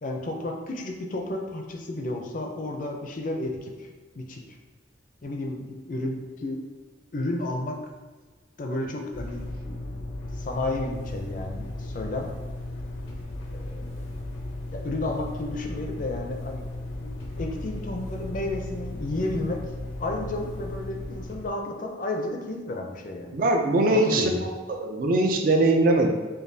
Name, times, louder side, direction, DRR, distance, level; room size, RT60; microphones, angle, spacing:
voice 1, 0.0-3.9 4.1-4.4 5.2-6.6 7.1-7.8 8.6-9.9 10.4-12.3 13.5-14.0 14.7-16.7 17.0-19.6 20.0-23.4 23.9-24.5, left 2 dB, 45° left, 2 dB, 0.5 m, -32 dB
sound 1, 9.1-21.5, left 1 dB, 85° left, 0.7 m, -36 dB
voice 2, 23.3-24.3 24.7-26.1, right 2 dB, 45° right, 3 dB, 0.4 m, -21 dB
5.2 x 2.3 x 2.7 m, 1.4 s
head